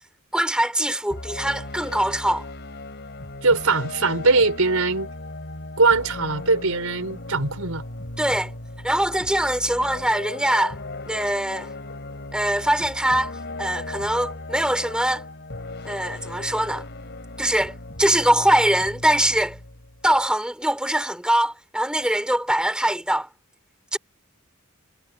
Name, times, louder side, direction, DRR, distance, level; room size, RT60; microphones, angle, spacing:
voice 1, 0.3-2.4 8.2-8.5 8.8-10.8 11.1-11.7 12.3-13.3 13.6-15.2 15.8-16.9 17.4-19.6 20.0-23.3 23.9-24.0, right 1 dB, 5° right, 3.1 m, -22 dB
sound 1, 1.1-20.3, left 2 dB, 55° left, 3.5 m, -37 dB
voice 2, 3.4-5.1 5.8-7.8, right 3 dB, 85° right, 4.4 m, -21 dB
head